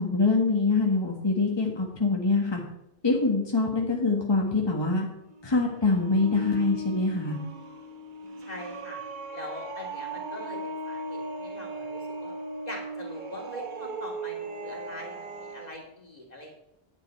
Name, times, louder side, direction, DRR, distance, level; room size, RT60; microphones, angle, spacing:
voice 1, 0.0-2.6 3.0-5.1 5.4-7.4, left 3 dB, 25° left, -1 dB, 1.6 m, -24 dB
sound 1, 5.2-15.8, right 2 dB, 50° right, 1.0 m, -38 dB
voice 2, 8.4-9.0 9.3-12.3 12.7-16.5, left 1 dB, 40° left, -1 dB, 2.8 m, -42 dB
10.5 x 9.6 x 4.7 m, 0.81 s
omnidirectional pair, 1.1 m